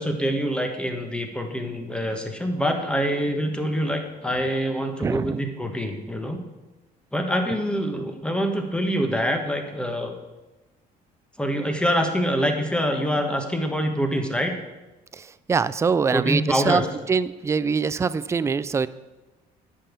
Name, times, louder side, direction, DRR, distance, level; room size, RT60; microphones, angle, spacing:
voice 1, 0.0-6.4 7.1-10.1 11.4-14.5 16.1-16.9, equal, 5° left, 4 dB, 1.4 m, -25 dB
voice 2, 5.0-5.4 15.1-18.9, right 5 dB, 15° right, 16 dB, 0.3 m, -24 dB
9.8 x 5.5 x 7.3 m, 1.1 s
cardioid pair, 110°, 17 cm